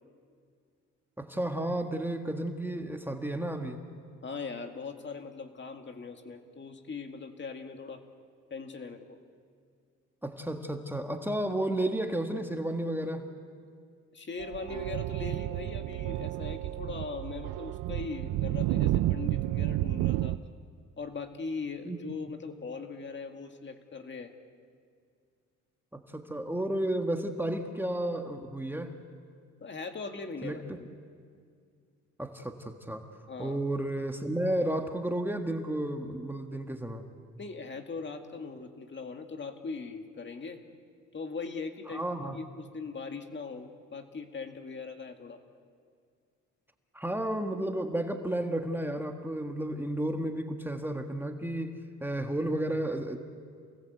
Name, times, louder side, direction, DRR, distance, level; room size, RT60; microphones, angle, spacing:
voice 1, 1.2-3.8 10.2-13.2 21.8-22.3 25.9-29.0 30.4-30.8 32.2-33.0 33.4-37.1 41.9-42.4 46.9-53.2, right 1 dB, 5° right, 4 dB, 1.7 m, -32 dB
voice 2, 4.2-8.0 8.5-9.2 14.1-20.4 21.0-24.3 29.6-30.9 33.3-33.6 37.4-40.6 41.1-42.0 42.3-45.4, left 4 dB, 40° left, 6 dB, 2.1 m, -40 dB
sound 1, 14.4-20.4, right 16 dB, 85° right, 0.5 m, -31 dB
28.0 x 18.5 x 8.1 m, 2.2 s
cardioid pair, 90°, 30 cm